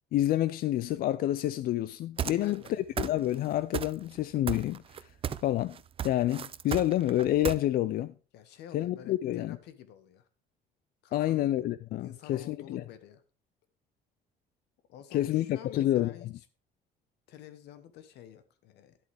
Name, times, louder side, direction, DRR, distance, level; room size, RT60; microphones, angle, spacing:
voice 1, 0.1-5.1 5.4-5.8 6.0-8.1 8.7-9.6 11.1-12.8 15.1-16.1, left 13 dB, 60° left, 0.4 m, -28 dB
voice 2, 2.2-2.8 8.3-10.3 11.0-11.7 12.0-13.2 14.9-16.4 17.3-19.0, left 10 dB, 80° left, 1.1 m, -49 dB
sound 1, 2.2-2.7 3.0-3.5 3.7-4.2 4.5-5.5 5.8-7.6, right 8 dB, 35° right, 0.4 m, -34 dB
10.5 x 8.0 x 3.4 m
cardioid pair, 110°, 17 cm